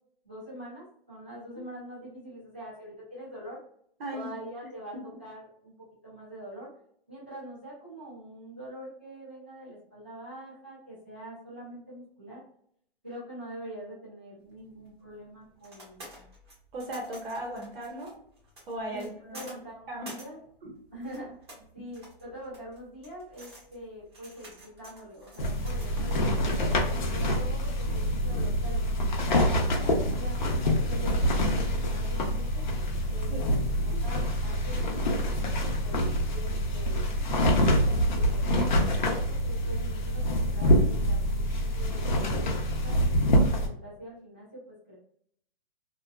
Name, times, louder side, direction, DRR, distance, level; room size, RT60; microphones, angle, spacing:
voice 1, 0.2-3.6 4.1-5.7 6.0-6.7 7.1-12.4 13.0-16.2 18.9-20.4 20.9-21.4 21.7-29.3 29.6-30.4 30.8-32.6 33.1-35.1 35.8-37.1 37.7-42.9 43.4-44.9, equal, 10° right, -12 dB, 0.4 m, -44 dB
voice 2, 4.0-4.3 4.9-5.0 16.7-18.1 18.7-19.5 19.9-20.1 33.3-33.5, right 1 dB, 70° right, 0 dB, 0.8 m, -36 dB
sound 1, 14.5-26.2, right 1 dB, 25° right, 0.8 m, -51 dB
sound 2, 25.4-43.7, equal, 50° left, 0.5 m, -26 dB
2.5 x 2.2 x 2.2 m, 0.66 s
hypercardioid pair, 180°, 30 cm